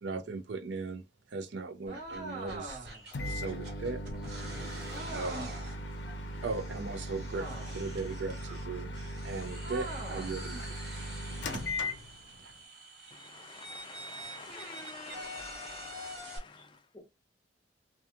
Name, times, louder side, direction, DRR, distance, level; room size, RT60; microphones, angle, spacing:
voice 1, 0.0-1.0 1.3-2.9 3.3-4.0 5.1-5.5 6.4-8.9 9.2-11.0 11.4-11.6 12.4-12.5, right 3 dB, 80° right, 0.5 m, -38 dB
sound 1, 1.9-3.1 4.9-5.7 7.3-8.0 9.6-10.4, right 2 dB, 40° right, 0.8 m, -42 dB
sound 2, 1.9-16.4, right 1 dB, 65° right, 1.2 m, -47 dB
Microwave oven, 3.1-12.5, left 1 dB, 80° left, 0.5 m, -39 dB
voice 2, 13.1-16.8, left 4 dB, 25° left, 0.4 m, -49 dB
voice 3, 14.5-16.0 16.5-16.7 16.9-17.0, left 2 dB, 10° left, 0.8 m, -48 dB
2.3 x 2.2 x 2.8 m
head